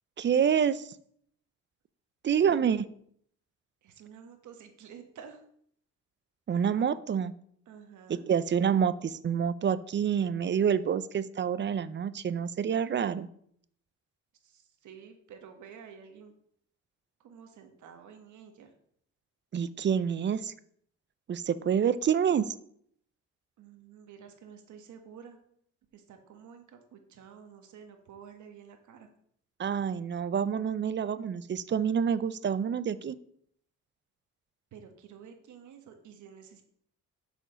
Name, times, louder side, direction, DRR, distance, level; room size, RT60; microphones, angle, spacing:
voice 1, 0.2-0.9 2.2-2.9 6.5-7.3 8.1-13.3 19.5-20.5 21.3-22.5 29.6-33.2, right 8 dB, 40° right, 15 dB, 0.5 m, -27 dB
voice 2, 3.8-5.4 6.5-6.7 7.7-8.3 14.4-16.3 17.2-18.7 23.6-25.4 25.9-29.1 34.7-36.6, right 7 dB, 75° right, 6 dB, 1.5 m, -50 dB
8.0 x 5.0 x 5.1 m, 0.66 s
cardioid pair, 90°, 30 cm